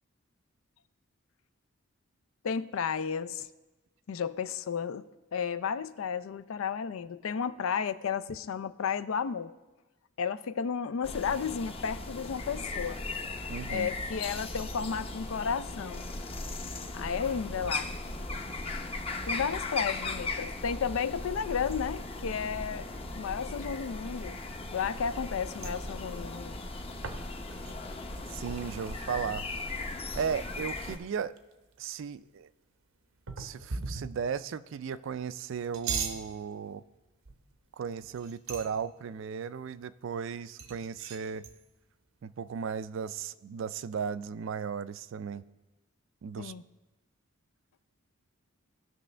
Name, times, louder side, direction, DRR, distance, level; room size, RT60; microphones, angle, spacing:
voice 1, 2.4-3.5 4.1-9.5 10.2-13.0 13.7-16.1 16.9-17.9 19.3-22.9 23.2-24.4 24.7-26.5 46.4-46.6, left 6 dB, 80° left, 14 dB, 0.4 m, -33 dB
sound 1, 11.0-31.0, left 2 dB, 30° left, 0.7 m, -37 dB
voice 2, 13.5-13.9 17.6-17.7 28.3-29.4 30.2-31.3 31.8-32.5 33.4-36.8 37.8-41.4 42.2-45.4 46.2-46.5, right 6 dB, 65° right, 15 dB, 0.4 m, -36 dB
sound 2, 25.5-30.4 30.7-30.8 31.1-31.8 33.3-34.4 35.5-36.3 37.2-37.6 38.0-38.9 40.6-41.6, right 5 dB, 85° right, 0.8 m, -40 dB
17.5 x 6.2 x 3.3 m, 1.1 s
head